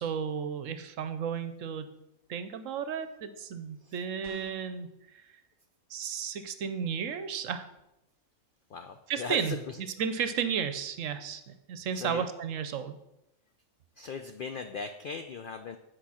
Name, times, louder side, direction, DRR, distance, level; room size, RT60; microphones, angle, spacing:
voice 1, 0.0-2.0 2.3-4.9 5.9-7.6 9.1-9.5 10.0-13.0, right 7 dB, 70° right, 10 dB, 1.0 m, -33 dB
sound 1, 4.2-4.8, right 6 dB, 35° right, 1.2 m, -48 dB
voice 2, 8.7-9.8 11.9-12.3 14.0-15.8, left 5 dB, 80° left, 7 dB, 0.4 m, -38 dB
8.7 x 4.8 x 5.6 m, 0.89 s
omnidirectional pair, 1.5 m